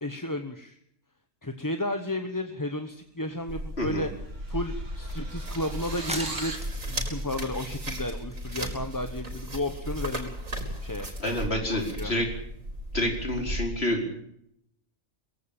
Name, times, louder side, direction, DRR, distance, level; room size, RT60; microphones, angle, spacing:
voice 1, 0.0-0.8 1.4-4.1 4.5-10.3 10.8-11.1 11.7-12.1, left 1 dB, 15° left, 7 dB, 1.1 m, -33 dB
sound 1, 3.5-6.7, right 3 dB, 65° right, 3.0 m, -41 dB
sound 2, 3.5-13.6, right 1 dB, 85° right, 4.7 m, -36 dB
sound 3, 4.5-4.6 5.0-5.1 6.0-7.4 7.9-9.0 9.2-9.3 9.6-9.9 10.1-10.2 10.5-10.6, equal, 5° right, 2.2 m, -38 dB
voice 2, 11.2-12.3 12.9-14.2, left 1 dB, 50° left, 2 dB, 4.8 m, -28 dB
22.0 x 16.0 x 8.9 m, 0.75 s
omnidirectional pair, 1.4 m